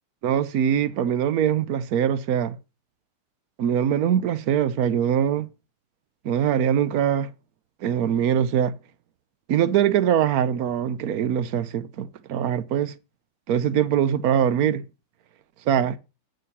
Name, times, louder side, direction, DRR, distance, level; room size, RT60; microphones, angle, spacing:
voice 1, 0.2-2.6 3.6-5.5 6.2-7.3 7.8-8.7 9.5-12.9 13.5-14.8 15.7-16.0, right 9 dB, 65° right, 0.9 m, -22 dB
9.2 x 6.5 x 5.4 m
omnidirectional pair, 2.4 m